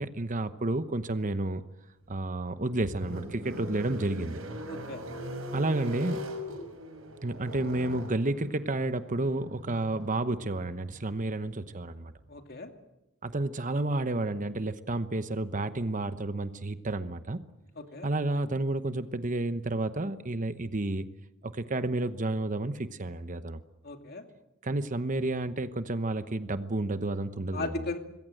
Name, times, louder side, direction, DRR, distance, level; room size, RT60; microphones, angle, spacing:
voice 1, 0.0-1.6 2.1-4.4 5.5-6.2 7.2-12.1 13.2-17.4 18.0-21.1 21.4-23.6 24.6-27.8, right 2 dB, 40° right, 11 dB, 1.0 m, -31 dB
sound 1, 2.1-12.3, equal, 75° right, 5.8 m, -41 dB
voice 2, 4.7-5.0 12.3-12.7 17.8-18.1 23.8-24.2 27.5-28.0, left 2 dB, 45° left, 5 dB, 2.5 m, -36 dB
26.0 x 21.0 x 7.8 m, 0.92 s
head